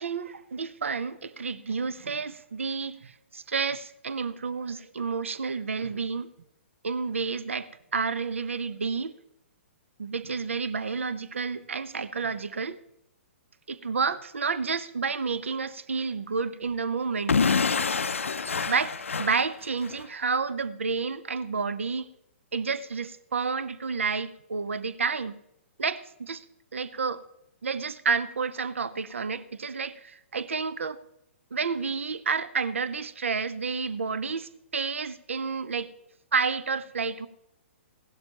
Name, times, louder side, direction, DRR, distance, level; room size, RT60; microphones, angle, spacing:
voice 1, 0.0-6.3 6.8-9.1 10.0-12.8 13.7-17.4 18.7-22.1 22.5-25.3 25.8-26.4 26.7-27.2 27.6-31.0 31.5-35.9 36.3-37.3, right 5 dB, 75° right, 15 dB, 0.7 m, -30 dB
Explosion / Shatter, 17.3-20.1, left 5 dB, 80° left, 0.5 m, -27 dB
17.0 x 12.0 x 2.9 m, 0.82 s
figure-of-eight pair, 120°, 7 cm